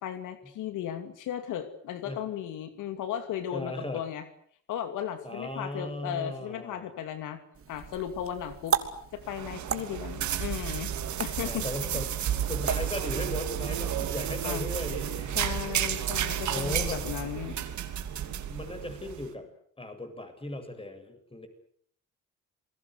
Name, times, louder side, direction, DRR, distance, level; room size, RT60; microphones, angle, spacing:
voice 1, 0.0-4.2 4.7-7.4 7.7-8.8 9.1-10.9 11.2-11.6 14.4-14.6 15.3-17.6, left 10 dB, 85° left, 9 dB, 2.7 m, -35 dB
voice 2, 3.5-4.0 5.2-6.9 11.4-15.4 16.5-17.0 18.4-19.5 19.8-21.5, left 1 dB, 20° left, 7 dB, 7.7 m, -37 dB
sound 1, 7.5-13.4, right 7 dB, 45° right, 3.0 m, -36 dB
sound 2, 9.3-19.3, right 9 dB, 70° right, 3.0 m, -32 dB
28.0 x 21.0 x 8.2 m, 0.62 s
cardioid pair, 90°, 30 cm